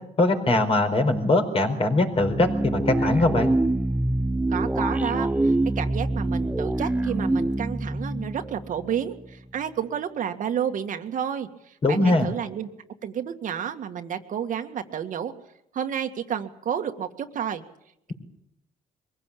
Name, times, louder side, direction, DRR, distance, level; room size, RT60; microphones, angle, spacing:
voice 1, 0.2-3.5 11.8-12.3, left 2 dB, 35° left, 5 dB, 4.7 m, -21 dB
sound 1, 2.1-9.3, right 2 dB, 10° right, 0.8 m, -25 dB
voice 2, 4.5-12.7 13.0-15.3 15.7-17.6, right 8 dB, 55° right, 6 dB, 1.9 m, -30 dB
23.0 x 16.5 x 8.5 m, 0.77 s
cardioid pair, 90°, 16 cm